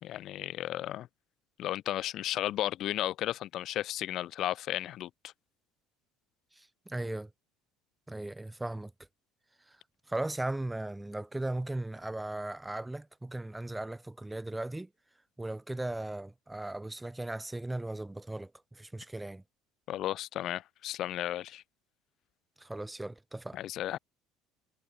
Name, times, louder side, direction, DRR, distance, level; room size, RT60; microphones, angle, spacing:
voice 1, 0.0-1.1 1.6-5.3 19.9-21.6 23.5-24.0, left 13 dB, 50° left, 3.0 m, -34 dB
voice 2, 6.5-7.3 8.1-8.9 9.7-9.8 10.1-14.9 15.4-19.4 22.6-23.6, right 2 dB, 5° right, 2.5 m, -37 dB
cardioid pair, 145°, 0 cm